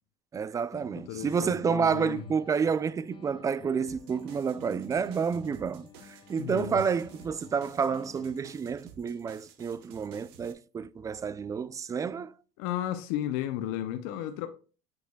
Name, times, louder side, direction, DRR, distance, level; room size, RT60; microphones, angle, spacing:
voice 1, 0.3-5.9 6.3-12.3, right 6 dB, 25° right, 0.4 m, -29 dB
sound 1, 0.7-8.7, left 8 dB, 40° left, 0.8 m, -52 dB
voice 2, 1.1-2.3 6.4-6.8 12.6-14.5, left 11 dB, 70° left, 0.7 m, -33 dB
sound 2, 3.9-10.5, right 7 dB, 80° right, 1.0 m, -53 dB
8.4 x 4.9 x 2.3 m
hypercardioid pair, 85°, 13 cm